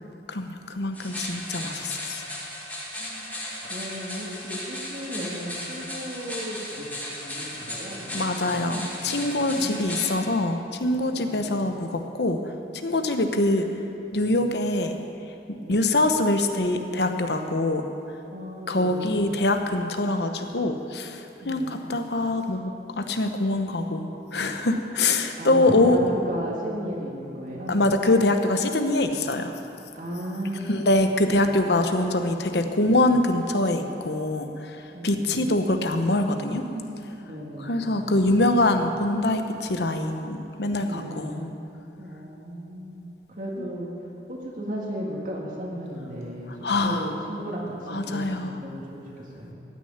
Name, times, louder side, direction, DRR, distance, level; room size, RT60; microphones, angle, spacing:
voice 1, 0.3-2.2 8.1-12.4 12.8-13.7 14.1-15.0 15.7-17.8 18.7-22.7 23.0-26.0 27.7-29.5 30.7-36.6 37.6-41.4 43.6-43.7 46.6-47.1 47.9-48.5, left 2 dB, 65° left, 7 dB, 1.0 m, -24 dB
sound 1, 0.9-10.1, left 1 dB, 10° left, 2.3 m, -36 dB
voice 2, 1.5-2.0 3.0-3.3 3.6-8.6 8.9-9.2 9.5-10.4 11.2-11.7 15.6-15.8 18.3-19.1 21.4-21.8 25.4-27.9 29.9-31.8 34.9-35.6 36.5-37.9 38.3-38.5 40.8-41.5 42.0-43.9 44.3-49.5, equal, 45° right, -3 dB, 2.0 m, -35 dB
15.0 x 6.6 x 9.5 m, 2.8 s
head